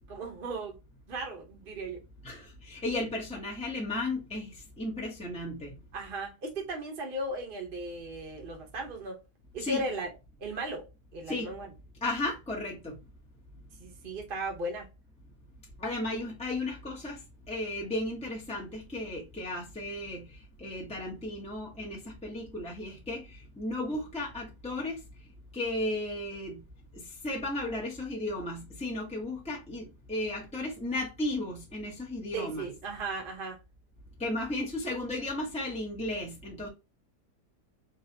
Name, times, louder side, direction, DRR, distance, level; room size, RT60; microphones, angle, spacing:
voice 1, 0.1-0.8 1.1-2.0 5.9-9.2 9.5-10.1 10.4-10.9 11.1-11.7 13.8-14.9 32.3-33.6, right 2 dB, 40° right, 1.1 m, -36 dB
voice 2, 2.2-5.8 9.6-9.8 11.3-11.5 12.0-13.0 15.8-17.2 17.5-20.3 20.6-25.0 25.5-26.6 26.9-32.6 34.2-36.7, left 2 dB, 5° left, 0.8 m, -34 dB
3.9 x 3.2 x 2.9 m
omnidirectional pair, 1.8 m